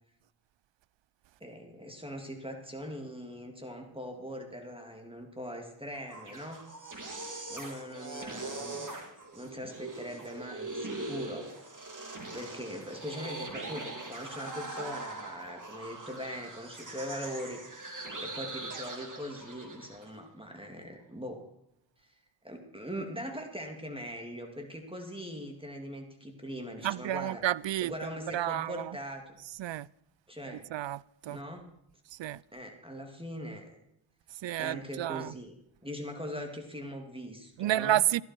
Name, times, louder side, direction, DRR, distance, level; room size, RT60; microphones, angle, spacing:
voice 1, 1.4-6.6 7.5-9.0 9.3-11.5 12.3-21.4 22.4-27.5 27.8-29.4 30.3-30.6 31.3-31.7 32.5-33.8 34.6-35.5 35.8-38.0, equal, 10° right, 2.6 m, -41 dB
sound 1, 6.0-20.1, right 2 dB, 40° right, 3.1 m, -41 dB
voice 2, 26.8-27.9 28.3-28.9 29.6-29.9 30.7-31.4 32.2-32.4 34.4-35.3 37.6-38.2, right 13 dB, 70° right, 0.5 m, -30 dB
15.0 x 13.0 x 4.6 m
cardioid pair, 55°, 47 cm